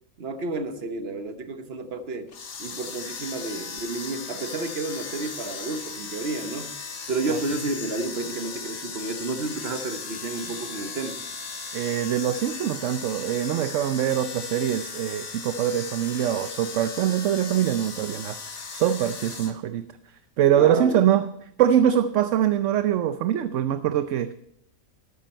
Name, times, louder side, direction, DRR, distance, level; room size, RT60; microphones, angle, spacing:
voice 1, 0.2-2.3 2.6-6.8 7.1-11.2 20.6-21.0, right 3 dB, 50° right, 8 dB, 1.3 m, -31 dB
sound 1, 2.3-19.5, left 5 dB, 80° left, 1.9 m, -37 dB
voice 2, 11.7-19.9 20.4-21.3 21.6-24.3, right 10 dB, 70° right, 11 dB, 0.9 m, -23 dB
13.0 x 12.5 x 4.4 m, 0.78 s
omnidirectional pair, 1.4 m